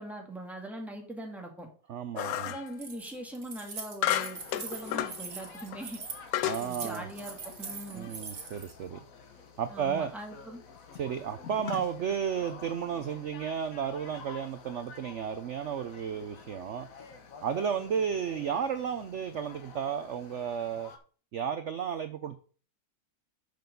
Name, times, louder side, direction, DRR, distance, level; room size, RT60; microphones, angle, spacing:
voice 1, 0.0-1.7 2.4-6.0 6.6-8.1 9.7-10.6, right 1 dB, ahead, 1 dB, 1.7 m, -41 dB
voice 2, 1.9-2.6 6.4-7.1 7.9-9.0 9.6-10.1 10.9-16.9 17.4-20.9 21.3-22.4, right 7 dB, 75° right, 10 dB, 0.6 m, -33 dB
sound 1, 2.2-2.7 4.0-5.2 5.7-5.8 6.3-6.7, left 13 dB, 85° left, 1.3 m, -31 dB
Keys jangling, 2.7-8.7, right 5 dB, 50° right, 1.9 m, -42 dB
sound 2, 4.3-21.0, left 5 dB, 55° left, 1.4 m, -49 dB
6.8 x 6.1 x 5.2 m, 0.41 s
omnidirectional pair, 1.9 m